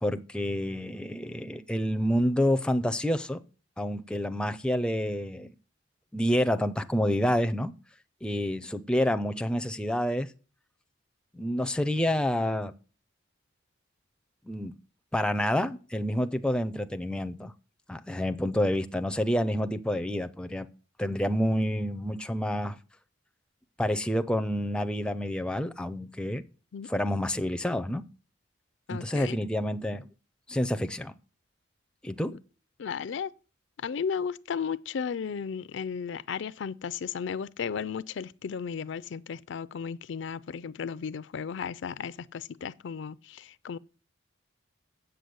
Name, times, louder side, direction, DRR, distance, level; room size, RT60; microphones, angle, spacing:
voice 1, 0.0-3.4 3.8-5.5 6.1-7.7 8.2-10.3 11.3-12.7 14.5-14.7 15.1-17.5 17.9-20.7 21.0-22.8 23.8-26.4 26.9-28.0 28.9-30.1 30.5-31.1 32.0-32.3, equal, 5° left, 0.5 m, -28 dB
voice 2, 28.9-29.4 32.8-33.3 33.8-43.8, left 6 dB, 60° left, 0.4 m, -34 dB
8.0 x 6.7 x 7.9 m
head